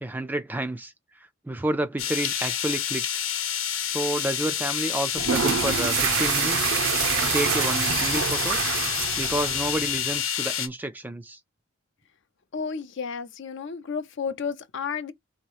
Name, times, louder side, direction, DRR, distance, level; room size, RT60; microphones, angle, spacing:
voice 1, 0.0-3.2 3.8-6.7 7.2-8.6 9.2-11.4, right 1 dB, 10° right, 0.3 m, -30 dB
sound 1, 2.0-10.7, left 9 dB, 75° left, 0.9 m, -28 dB
sound 2, 5.1-10.2, right 7 dB, 70° right, 0.6 m, -26 dB
voice 2, 12.5-15.1, left 5 dB, 55° left, 0.5 m, -32 dB
4.0 x 2.9 x 4.6 m
head